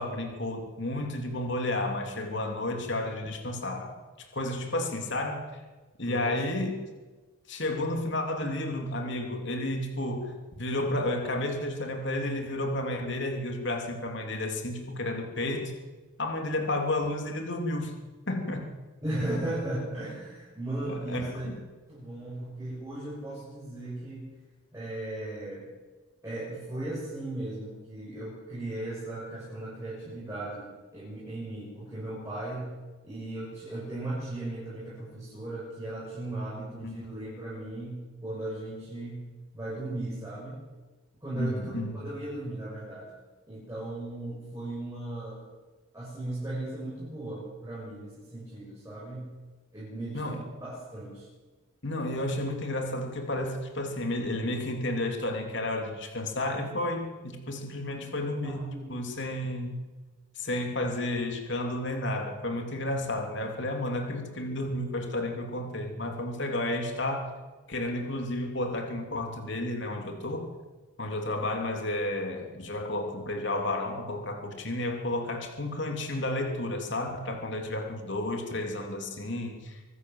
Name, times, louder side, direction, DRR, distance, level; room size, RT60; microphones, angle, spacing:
voice 1, 0.0-5.6 6.0-6.8 7.5-15.7 16.2-18.0 18.3-18.7 20.9-21.6 36.8-36.9 41.4-42.0 50.1-50.4 51.8-59.8 60.3-67.3 67.7-70.5 71.0-79.8, left 1 dB, 60° left, 3 dB, 3.3 m, -32 dB
voice 2, 6.1-6.4 19.0-21.5 21.9-24.3 24.7-25.6 26.2-32.7 33.0-39.2 39.5-40.6 41.2-43.1 43.5-45.4 45.9-49.3 49.7-51.3 58.0-58.9, right 1 dB, 15° right, -7 dB, 7.5 m, -37 dB
25.0 x 13.5 x 8.0 m, 1.3 s
head